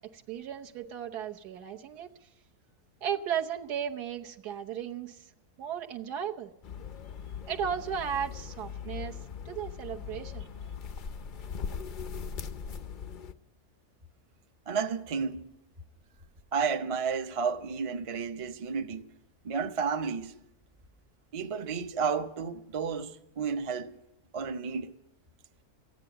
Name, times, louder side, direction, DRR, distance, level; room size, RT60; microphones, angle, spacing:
voice 1, 0.1-2.3 3.0-5.3 5.6-6.5 7.5-9.2 9.4-10.5, right 8 dB, 80° right, 1.5 m, -35 dB
sound 1, 6.6-13.3, left 6 dB, 85° left, 0.4 m, -40 dB
voice 2, 14.7-15.5 16.5-19.1 19.4-20.3 21.3-24.0 24.3-24.9, right 5 dB, 45° right, 0.4 m, -32 dB
14.5 x 9.7 x 10.0 m
omnidirectional pair, 1.7 m